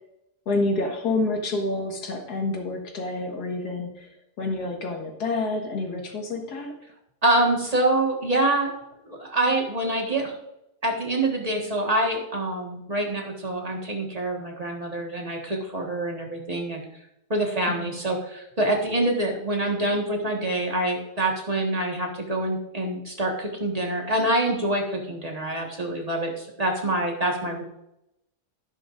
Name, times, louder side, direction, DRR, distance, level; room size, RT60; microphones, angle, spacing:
voice 1, 0.5-4.1 4.4-6.8 17.7-18.0, left 2 dB, 85° left, 2 dB, 2.1 m, -28 dB
voice 2, 7.2-8.7 9.0-10.3 10.8-16.8 17.3-27.6, right 1 dB, 25° right, 0 dB, 1.6 m, -26 dB
12.5 x 10.5 x 2.6 m, 0.85 s
omnidirectional pair, 1.7 m